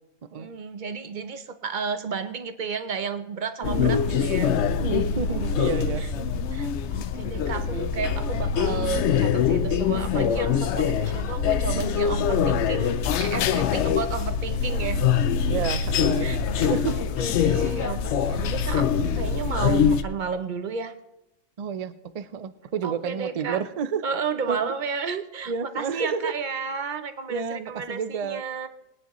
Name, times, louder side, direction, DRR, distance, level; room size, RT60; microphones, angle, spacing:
voice 1, 0.3-4.5 6.0-6.1 6.5-15.0 15.8-15.9 16.2-20.9 22.8-23.6 24.0-28.7, right 5 dB, 45° right, 10 dB, 0.6 m, -32 dB
sound 1, 3.6-20.0, left 7 dB, 65° left, 0.8 m, -24 dB
voice 2, 3.6-4.0 4.8-6.4 7.3-7.9 15.5-16.3 16.7-17.0 21.6-24.0 24.5-24.7 25.5-26.3 27.3-28.4, right 6 dB, 75° right, 12 dB, 0.3 m, -30 dB
21.5 x 9.6 x 3.0 m, 0.87 s
omnidirectional pair, 1.6 m